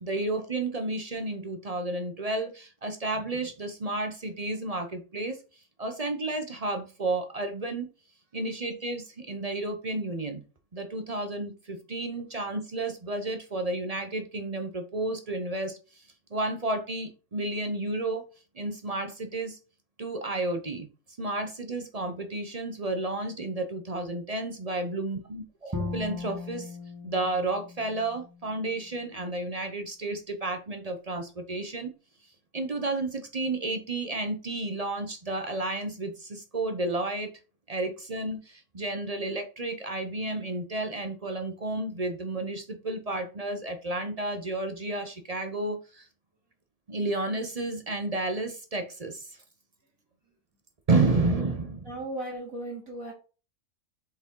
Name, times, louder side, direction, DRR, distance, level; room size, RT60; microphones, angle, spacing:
voice 1, 0.0-5.4 5.8-7.9 8.3-10.4 10.7-15.8 16.3-18.2 18.6-19.6 20.0-20.9 21.2-26.7 27.0-31.9 32.5-37.3 37.7-46.1 46.9-49.3 50.9-51.9, right 2 dB, 35° right, 0.7 m, -31 dB
Bowed string instrument, 25.7-28.8, left 3 dB, 15° right, 1.0 m, -38 dB
voice 2, 51.8-53.1, right 1 dB, 65° right, 2.9 m, -36 dB
7.6 x 4.9 x 3.7 m
omnidirectional pair, 1.5 m